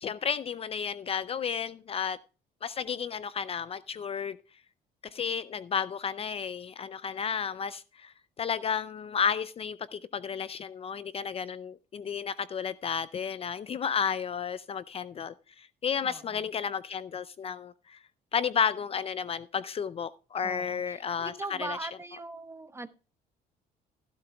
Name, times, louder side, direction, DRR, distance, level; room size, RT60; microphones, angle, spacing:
voice 1, 0.0-2.2 2.6-4.4 5.1-18.0 18.3-21.3 21.6-21.7, left 7 dB, 35° left, 0.4 m, -32 dB
voice 2, 16.0-16.5 20.4-22.9, right 3 dB, 15° right, 0.9 m, -40 dB
16.0 x 11.5 x 2.3 m
cardioid pair, 110°, 17 cm